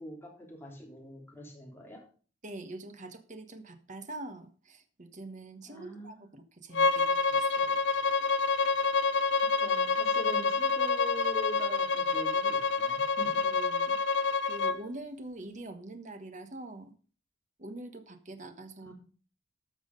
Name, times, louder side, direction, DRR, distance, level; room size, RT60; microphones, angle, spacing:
voice 1, 0.0-2.0 5.7-6.3 9.6-13.4 18.8-18.9, left 1 dB, 15° left, -1 dB, 3.1 m, -43 dB
voice 2, 2.4-7.8 13.4-16.9 17.6-18.9, right 2 dB, 40° right, 8 dB, 1.3 m, -44 dB
Bowed string instrument, 6.7-14.8, left 4 dB, 65° left, 0.5 m, -27 dB
13.0 x 6.2 x 5.3 m, 0.40 s
head